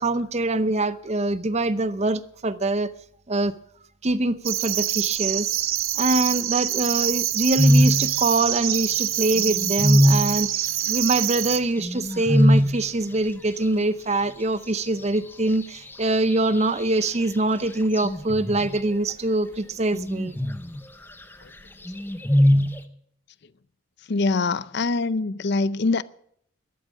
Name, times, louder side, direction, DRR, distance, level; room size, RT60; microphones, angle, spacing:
voice 1, 0.0-2.9 3.3-3.6 4.0-5.6 6.0-10.5 10.8-20.4, right 2 dB, 30° right, 0.6 m, -24 dB
sound 1, 4.4-11.6, right 13 dB, 75° right, 0.9 m, -25 dB
sound 2, 7.6-8.1 8.7-8.8 9.4-10.3 11.8-12.8 16.3-16.8 17.9-18.8 19.9-20.8 21.8-22.8, equal, 10° left, 0.8 m, -20 dB
voice 2, 24.1-26.0, left 3 dB, 55° left, 0.5 m, -23 dB
13.5 x 12.0 x 6.2 m
head